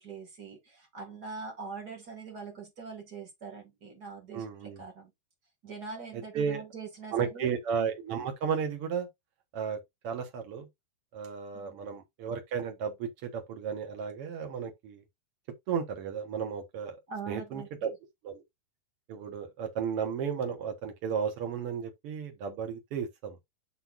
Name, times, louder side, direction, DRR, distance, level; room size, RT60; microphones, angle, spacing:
voice 1, 0.0-5.1 5.6-7.5 11.5-11.8 17.1-17.9, right 4 dB, 35° right, 1.8 m, -43 dB
voice 2, 4.3-4.8 6.3-6.6 7.1-9.1 9.5-10.7 11.1-15.0 15.7-17.0 17.3-17.9 18.2-18.4 19.1-23.4, right 7 dB, 80° right, 1.3 m, -34 dB
7.8 x 6.0 x 2.5 m
omnidirectional pair, 4.5 m